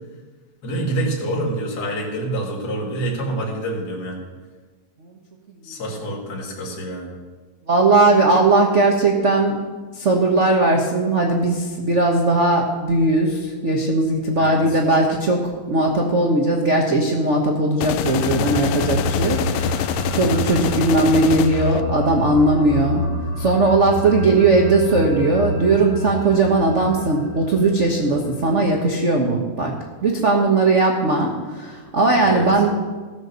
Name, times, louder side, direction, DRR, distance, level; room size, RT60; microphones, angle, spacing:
voice 1, 0.6-4.2 5.6-7.2 14.4-14.8 32.2-32.6, right 1 dB, 35° left, -3 dB, 2.2 m, -27 dB
voice 2, 7.7-9.6 9.9-23.0 23.4-29.7 30.0-32.7, right 2 dB, 85° right, 0 dB, 0.6 m, -18 dB
sound 1, 17.8-21.8, left 11 dB, 90° left, 2.0 m, -25 dB
sound 2, 18.0-28.8, equal, 45° right, 0.9 m, -28 dB
15.5 x 6.8 x 6.8 m, 1.4 s
omnidirectional pair, 3.3 m